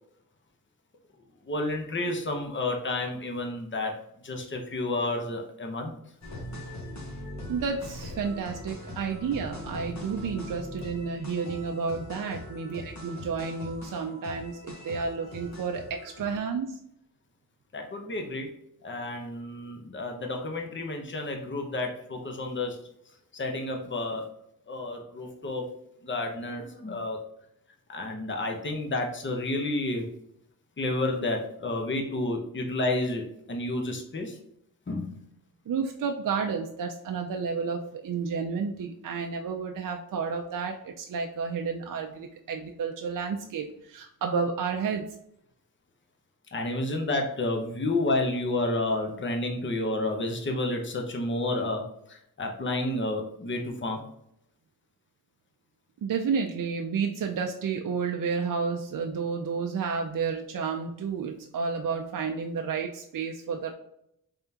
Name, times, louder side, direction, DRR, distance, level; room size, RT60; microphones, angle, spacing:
voice 1, 1.5-3.9 4.2-5.9 17.7-18.6 18.8-22.8 23.3-24.2 24.7-25.7 26.0-27.2 27.9-30.1 30.8-34.4 34.9-35.1 46.5-51.8 52.1-54.0, left 2 dB, 30° left, 2 dB, 0.7 m, -30 dB
sound 1, 6.2-16.4, left 1 dB, 50° left, 1.1 m, -41 dB
voice 2, 7.5-16.8 35.7-45.0 56.0-63.7, right 5 dB, 60° right, 3 dB, 0.4 m, -31 dB
3.6 x 3.4 x 2.8 m, 0.75 s
wide cardioid pair, 75°, 37 cm